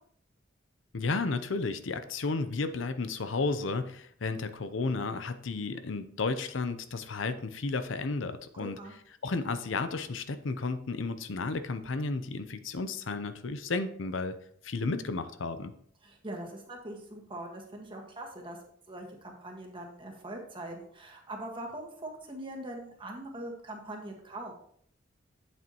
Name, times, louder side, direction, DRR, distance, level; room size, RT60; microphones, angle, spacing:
voice 1, 0.9-8.8 9.2-14.4 14.6-15.7, left 3 dB, 75° left, 10 dB, 0.6 m, -33 dB
voice 2, 8.6-8.9 16.0-18.6 18.9-24.5, right 1 dB, 25° right, 1 dB, 1.5 m, -42 dB
8.5 x 7.6 x 2.9 m, 0.64 s
head